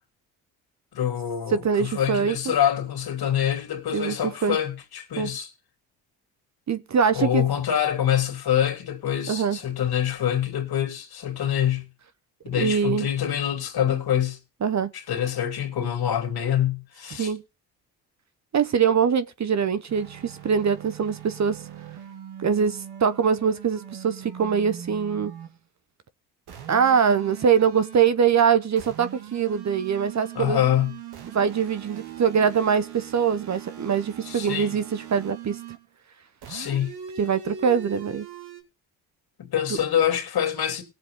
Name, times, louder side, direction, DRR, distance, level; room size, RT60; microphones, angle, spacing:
voice 1, 0.9-5.5 7.1-11.9 12.4-14.4 14.9-17.3 30.3-31.0 34.2-34.8 36.5-36.9 39.4-40.8, left 10 dB, 65° left, 2.9 m, -25 dB
voice 2, 1.5-2.5 3.9-4.6 5.2-5.3 6.7-7.4 9.3-9.6 12.5-13.1 14.6-14.9 17.2-17.4 18.5-21.6 22.4-25.3 26.7-30.6 31.3-35.6 37.2-38.3, right 7 dB, 40° right, 1.0 m, -23 dB
sound 1, 19.9-25.6 26.5-28.2 28.8-35.9 36.4-38.6, right 9 dB, 70° right, 2.4 m, -41 dB
18.0 x 7.4 x 3.7 m
supercardioid pair, 60°, 41 cm